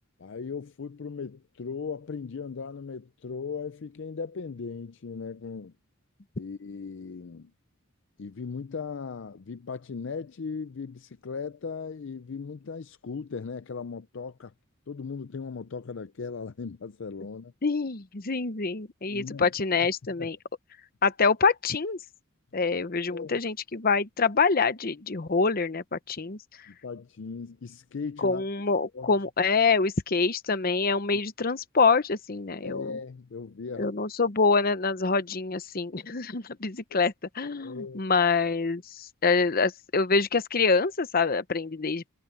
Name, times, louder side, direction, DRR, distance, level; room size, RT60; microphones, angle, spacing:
voice 1, 0.2-5.7 6.4-7.5 8.2-14.5 14.9-17.5 19.1-19.5 20.2-20.3 23.1-23.4 26.7-28.4 28.9-29.1 32.6-33.9 36.9-37.0 37.6-38.0, left 5 dB, 60° left, 0.5 m, -37 dB
voice 2, 17.6-20.4 21.0-22.0 22.5-26.7 28.2-33.0 33.8-42.0, left 4 dB, 45° left, 0.9 m, -26 dB
head